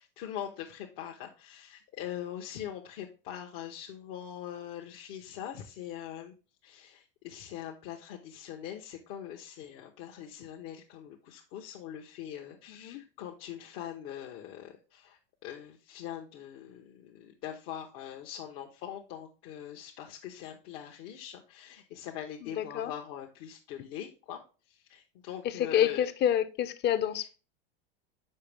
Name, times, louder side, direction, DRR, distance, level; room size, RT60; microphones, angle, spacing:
voice 1, 0.0-6.3 6.6-24.4 24.7-26.1 27.1-27.3, left 10 dB, 60° left, 1.0 m, -42 dB
voice 2, 12.7-13.0 22.4-22.9 25.4-27.3, left 10 dB, 35° left, 0.7 m, -28 dB
6.6 x 4.9 x 3.4 m
hypercardioid pair, 100°, 29 cm